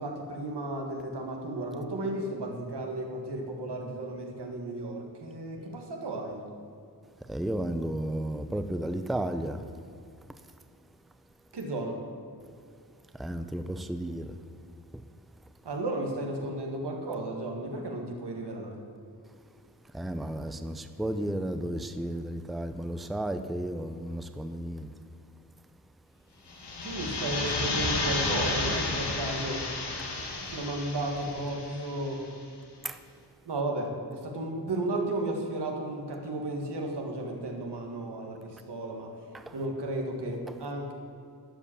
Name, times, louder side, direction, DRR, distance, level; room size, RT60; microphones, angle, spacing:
voice 1, 0.0-6.4 11.5-12.0 15.6-18.8 26.8-29.7 30.5-32.2 33.5-39.2 39.5-40.9, right 2 dB, 90° right, 2 dB, 1.8 m, -34 dB
voice 2, 7.3-9.6 13.2-14.3 19.9-24.9 32.8-33.0 39.3-39.5, right 1 dB, ahead, 9 dB, 0.5 m, -33 dB
sound 1, 26.5-32.2, left 3 dB, 85° left, 1.5 m, -32 dB
12.5 x 5.1 x 8.5 m, 2.4 s
wide cardioid pair, 95°, 40 cm